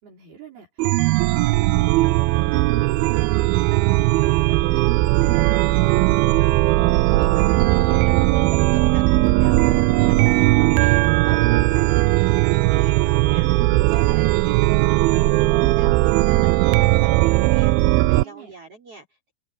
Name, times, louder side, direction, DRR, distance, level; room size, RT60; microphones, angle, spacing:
voice 1, 0.0-6.0 18.2-18.5, right 8 dB, 65° right, 6.6 m, -43 dB
Chime, 0.8-18.2, right 20 dB, 80° right, 2.2 m, -18 dB
voice 2, 6.8-8.5 8.7-19.3, right 3 dB, 35° right, 5.1 m, -44 dB
omnidirectional pair, 4.7 m